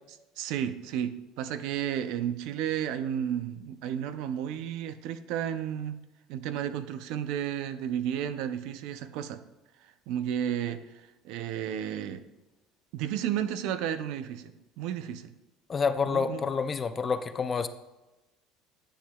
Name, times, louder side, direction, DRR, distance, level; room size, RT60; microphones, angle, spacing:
voice 1, 0.4-6.0 6.3-9.4 9.8-12.2 12.9-15.3 16.0-16.5, right 10 dB, 65° right, 11 dB, 0.5 m, -33 dB
voice 2, 15.7-17.7, left 5 dB, 25° left, 11 dB, 0.4 m, -28 dB
10.0 x 7.6 x 2.3 m, 1.0 s
cardioid pair, 150°, 0 cm